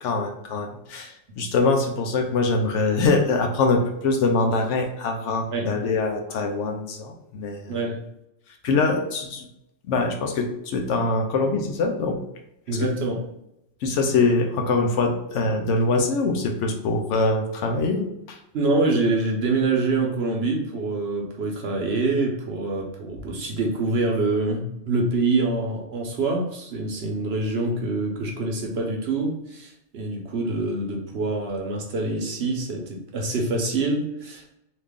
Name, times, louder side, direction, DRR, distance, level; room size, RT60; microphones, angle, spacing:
voice 1, 0.0-7.7 8.6-9.5 9.9-12.2 12.8-12.9 13.8-18.4, left 3 dB, 70° left, 3 dB, 0.9 m, -23 dB
voice 2, 12.7-13.2 18.5-34.6, right 3 dB, 60° right, 1 dB, 0.8 m, -25 dB
3.1 x 2.4 x 3.5 m, 0.83 s
omnidirectional pair, 1.4 m